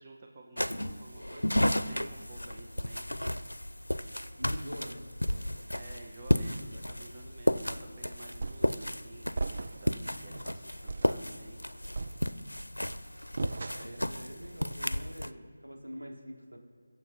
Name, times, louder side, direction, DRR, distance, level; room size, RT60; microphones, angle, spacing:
voice 1, 0.0-3.1 5.7-11.6, right 2 dB, 30° right, 2 dB, 1.2 m, -52 dB
sound 1, 0.6-15.3, left 1 dB, 85° left, 0.7 m, -33 dB
voice 2, 4.4-5.0 13.8-16.6, equal, 80° right, 0 dB, 3.8 m, -44 dB
sound 2, 8.4-8.8 9.4-10.0 10.4-10.5 10.9-11.2 11.9-12.6 13.4-14.1, right 3 dB, 45° right, 0.5 m, -37 dB
22.0 x 7.7 x 5.4 m, 2.2 s
figure-of-eight pair, 160°, 0 cm